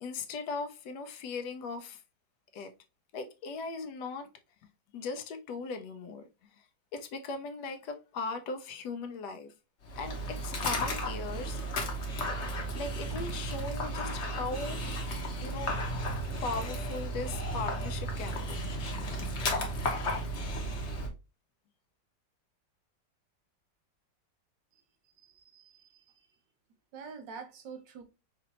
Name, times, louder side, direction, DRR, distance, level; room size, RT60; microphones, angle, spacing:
voice 1, 0.0-2.0 2.5-2.7 3.1-4.3 4.9-9.5 10.0-11.6 12.7-14.8 15.4-15.8 16.4-20.0, left 4 dB, 75° left, 1.1 m, -39 dB
Dog, 9.8-21.1, equal, 50° left, 1.0 m, -34 dB
voice 2, 25.2-26.0 26.9-28.0, right 5 dB, 75° right, 1.4 m, -46 dB
5.0 x 2.5 x 2.8 m
omnidirectional pair, 1.9 m